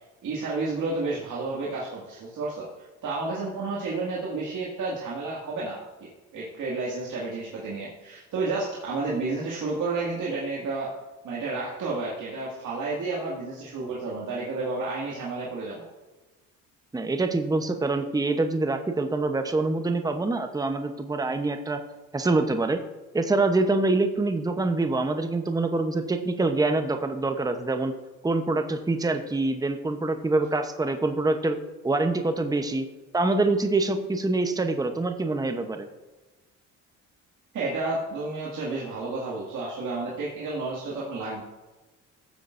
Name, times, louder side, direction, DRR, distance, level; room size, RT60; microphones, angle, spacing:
voice 1, 0.2-2.7 3.0-10.9 11.2-15.9 37.5-41.4, right 3 dB, 60° right, -5 dB, 2.2 m, -31 dB
voice 2, 16.9-21.8 22.1-22.8 23.1-27.9 28.2-31.6 31.8-32.9 33.1-35.9, right 2 dB, 10° right, 7 dB, 0.9 m, -25 dB
15.0 x 7.7 x 2.6 m, 1.2 s
supercardioid pair, 80°, 34 cm